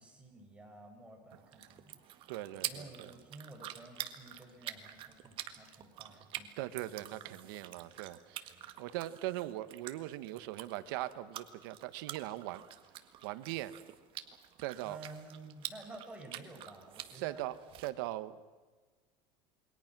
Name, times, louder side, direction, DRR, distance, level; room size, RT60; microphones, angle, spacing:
voice 1, 0.0-2.0 2.7-6.5 7.0-7.5 7.8-8.0 8.4-8.7 14.8-17.4, right 2 dB, 10° right, 0 dB, 6.4 m, -52 dB
sound 1, 1.3-17.9, right 12 dB, 50° right, 1.8 m, -47 dB
voice 2, 2.3-3.1 6.6-8.5 8.8-12.6 13.2-13.7 14.6-15.0 17.2-17.5 17.8-18.4, right 15 dB, 85° right, 13 dB, 1.3 m, -40 dB
28.0 x 23.0 x 6.2 m, 1.3 s
cardioid pair, 140°, 11 cm